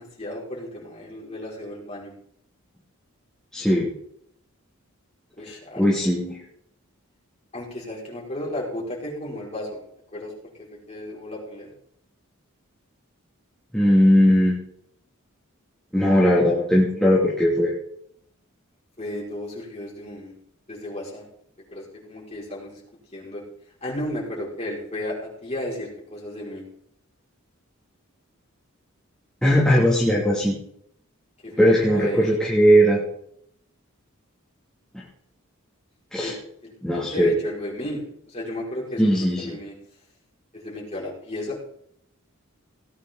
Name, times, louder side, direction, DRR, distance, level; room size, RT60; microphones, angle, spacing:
voice 1, 0.0-2.1 5.4-6.1 7.5-9.8 10.1-10.3 10.9-11.7 19.0-20.3 20.7-21.2 21.7-22.8 23.1-23.4 23.8-26.6 31.4-32.3 36.2-36.4 36.6-39.7 40.5-41.6, left 1 dB, 30° left, -4 dB, 5.2 m, -34 dB
voice 2, 3.5-3.9 5.8-6.4 13.7-14.6 15.9-17.7 29.4-30.6 31.6-33.0 34.9-35.0 36.1-36.3 36.8-37.3 39.0-39.5, equal, 5° left, -6 dB, 2.4 m, -19 dB
18.0 x 9.7 x 3.9 m, 0.69 s
head